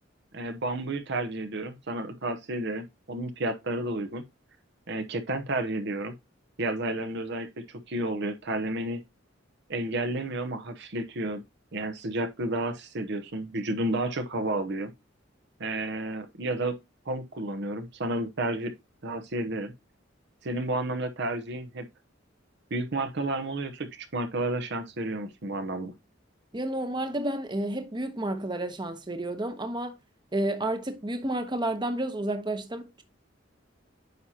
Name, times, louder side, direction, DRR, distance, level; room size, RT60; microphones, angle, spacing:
voice 1, 0.3-4.2 4.9-6.1 6.6-9.0 9.7-11.4 11.7-14.9 15.6-16.8 17.1-18.7 19.0-19.7 20.4-21.9 22.7-25.9, right 2 dB, 65° right, 0.9 m, -31 dB
voice 2, 26.5-29.9 30.3-33.0, right 1 dB, 25° right, 0.9 m, -31 dB
9.4 x 5.7 x 2.8 m
head